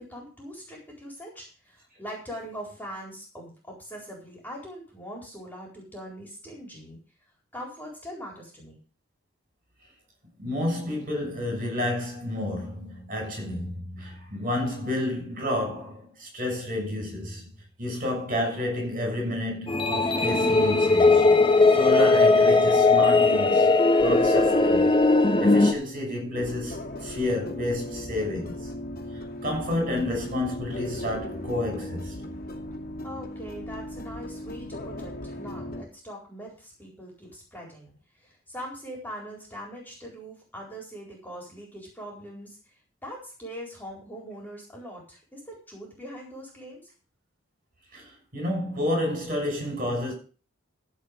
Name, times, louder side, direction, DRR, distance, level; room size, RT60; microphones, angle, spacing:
voice 1, 0.0-7.0 7.5-8.8 33.0-37.9 38.2-42.6 43.0-46.9, equal, 10° left, 4.2 m, -41 dB
voice 2, 10.4-17.5 17.8-21.3 21.7-24.9 25.4-28.7 29.1-32.3 47.9-50.1, left 1 dB, 45° right, 6.4 m, -30 dB
sound 1, 19.7-25.7, left 3 dB, 25° left, 1.2 m, -19 dB
sound 2, 26.3-35.8, left 1 dB, 45° left, 2.6 m, -37 dB
15.0 x 5.2 x 6.8 m
head